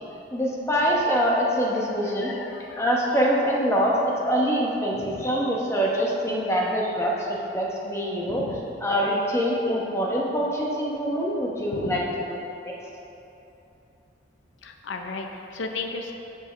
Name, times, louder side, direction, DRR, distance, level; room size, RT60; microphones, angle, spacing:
voice 1, 0.3-2.3 2.8-8.4 8.8-12.0 12.6-12.7, equal, 15° left, -3 dB, 0.9 m, -24 dB
voice 2, 2.0-3.0 4.9-5.4 8.2-8.6 11.7-12.1 14.6-16.1, left 3 dB, 85° left, 4 dB, 0.6 m, -35 dB
6.2 x 5.4 x 5.4 m, 2.9 s
head